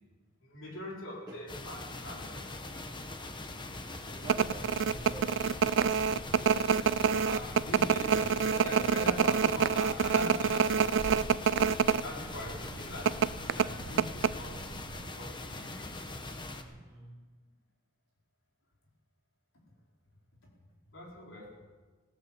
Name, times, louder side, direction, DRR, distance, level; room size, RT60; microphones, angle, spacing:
voice 1, 0.4-2.4 6.3-11.6 12.0-13.2 13.5-14.8 15.1-15.9 20.9-21.5, left 1 dB, 65° left, -2 dB, 4.5 m, -43 dB
sound 1, 1.5-16.6, left 2 dB, 25° left, 1.2 m, -42 dB
voice 2, 3.5-5.5 16.5-17.3, right 1 dB, 20° right, -2 dB, 1.6 m, -48 dB
sound 2, 4.2-12.0 12.3-12.4 13.1-14.7 15.0-15.1, right 6 dB, 60° right, 0.4 m, -26 dB
16.5 x 11.5 x 7.3 m, 1.4 s
head